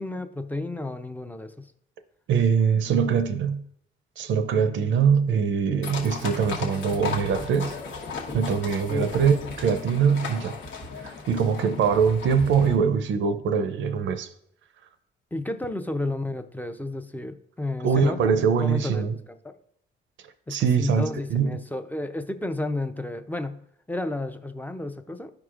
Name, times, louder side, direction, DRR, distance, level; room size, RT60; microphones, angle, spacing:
voice 1, 0.0-1.7 8.9-9.1 15.3-18.3 18.6-19.1 19.4-19.5 20.5-23.6 23.9-25.3, left 2 dB, 10° left, 8 dB, 0.5 m, -31 dB
voice 2, 2.3-3.6 4.2-7.8 8.3-10.6 11.0-14.3 17.8-19.2 20.5-21.5, right 6 dB, 70° right, 10 dB, 0.6 m, -23 dB
sound 1, 5.8-12.8, left 4 dB, 75° left, 1.2 m, -36 dB
11.5 x 4.7 x 2.5 m, 0.71 s
cardioid pair, 90°, 20 cm